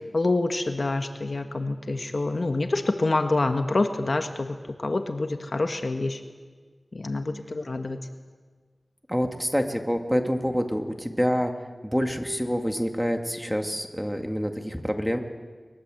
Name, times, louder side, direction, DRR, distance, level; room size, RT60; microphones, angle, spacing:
voice 1, 0.0-6.2 6.9-8.0, left 2 dB, 55° left, 6 dB, 1.5 m, -27 dB
voice 2, 9.1-11.5 11.8-15.2, equal, ahead, 4 dB, 2.2 m, -27 dB
22.5 x 21.5 x 7.9 m, 1.5 s
wide cardioid pair, 65°, 0 cm